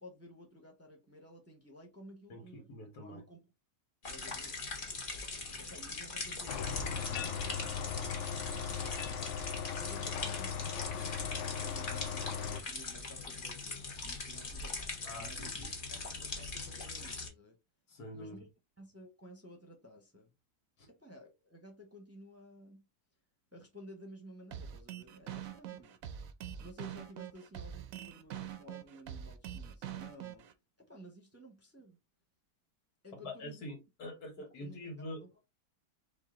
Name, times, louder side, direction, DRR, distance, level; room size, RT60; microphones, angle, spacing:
voice 1, 0.0-2.7 3.0-3.4 4.1-4.5 5.6-8.2 9.5-14.8 15.1-17.6 18.1-18.5 18.8-20.3 20.9-22.9 23.5-26.0 26.6-30.5 30.8-32.0 33.0-33.6 34.6-34.8 35.1-35.3, equal, 10° right, 0.9 m, -54 dB
voice 2, 2.3-3.2 15.0-15.7 17.9-18.4 20.8-20.9 33.1-35.3, left 1 dB, 80° left, 1.9 m, -45 dB
sound 1, 4.0-17.3, left 3 dB, 35° left, 1.1 m, -41 dB
sound 2, 6.5-12.6, left 7 dB, 65° left, 0.7 m, -38 dB
sound 3, 24.5-30.5, right 10 dB, 70° right, 1.0 m, -44 dB
4.8 x 2.6 x 3.7 m
omnidirectional pair, 1.6 m